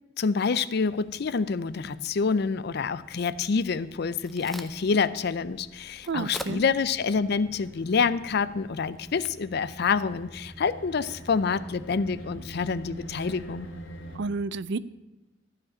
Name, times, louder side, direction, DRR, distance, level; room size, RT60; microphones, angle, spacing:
voice 1, 0.2-13.7, left 5 dB, 55° left, 15 dB, 0.5 m, -27 dB
sound 1, 0.8-14.2, right 1 dB, 75° left, 2.5 m, -47 dB
Crack, 3.8-10.7, equal, ahead, 0.5 m, -47 dB
voice 2, 6.1-6.6 14.1-14.8, right 4 dB, 60° right, 17 dB, 0.4 m, -30 dB
14.0 x 5.0 x 8.4 m, 1.1 s
head